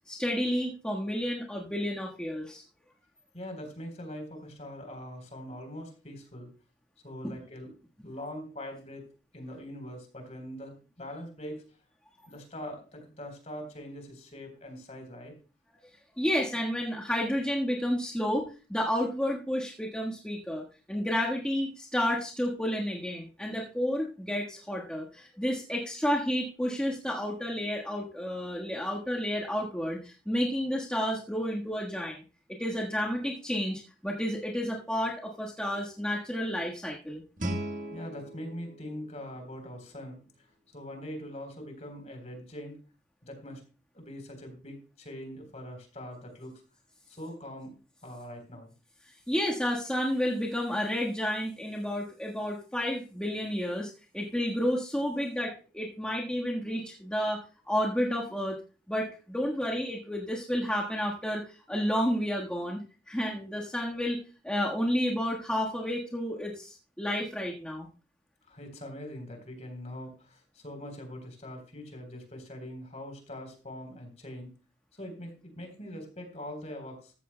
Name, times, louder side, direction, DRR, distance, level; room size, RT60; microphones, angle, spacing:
voice 1, 0.1-2.6 7.2-7.3 16.2-18.4 18.7-32.2 32.6-37.2 49.3-58.6 58.9-61.4 61.7-64.2 64.4-67.9, equal, 5° left, -3 dB, 1.4 m, -31 dB
voice 2, 3.3-6.5 7.0-7.7 8.0-9.1 9.3-11.6 12.3-15.3 37.9-40.5 40.7-42.8 43.2-43.6 43.9-46.6 47.1-47.7 48.0-48.7 68.5-74.5 75.0-77.1, equal, 40° left, 5 dB, 3.7 m, -42 dB
Guitar, 37.4-40.1, right 1 dB, 45° right, 1.5 m, -39 dB
15.0 x 14.0 x 2.2 m, 0.34 s
head